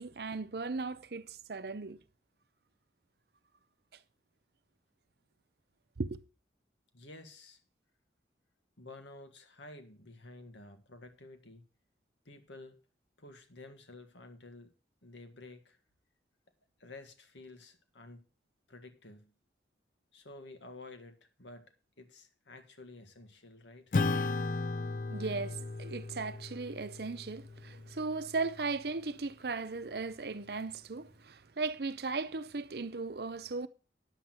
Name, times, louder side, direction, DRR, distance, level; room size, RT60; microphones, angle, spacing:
voice 1, 0.0-2.0 6.0-6.2 25.1-33.7, right 3 dB, 60° right, 0.7 m, -37 dB
voice 2, 6.9-7.6 8.8-11.6 12.3-12.8 13.2-14.7 15.0-15.8 16.8-18.2 18.7-19.3 20.1-21.7 22.0-23.9, left 2 dB, 90° left, 1.8 m, -51 dB
Acoustic guitar / Strum, 23.9-28.7, left 3 dB, 45° left, 0.4 m, -36 dB
9.9 x 7.8 x 5.8 m
head